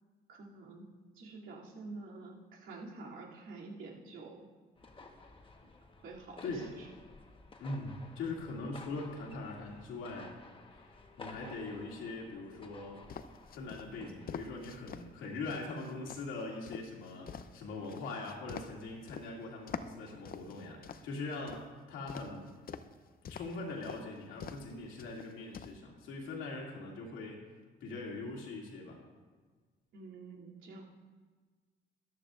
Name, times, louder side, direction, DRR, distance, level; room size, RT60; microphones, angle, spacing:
voice 1, 0.3-0.9 1.1-4.4 6.0-6.9 29.9-30.8, right 3 dB, 85° right, -4 dB, 2.8 m, -48 dB
sound 1, 4.8-14.8, left 3 dB, 25° left, 1.3 m, -54 dB
voice 2, 7.6-10.3 10.7-10.9 11.2-13.0 13.5-22.5 23.3-27.4 27.8-29.0, left 3 dB, 90° left, -1 dB, 2.5 m, -42 dB
sound 2, 13.1-15.0 15.5-19.3 19.7-21.6 22.1-22.9 23.2-23.6 23.8-24.0 24.4-24.7 25.0-25.7, left 7 dB, 50° left, 0.6 m, -45 dB
13.5 x 11.5 x 2.5 m, 1.4 s
cardioid pair, 90°, 20 cm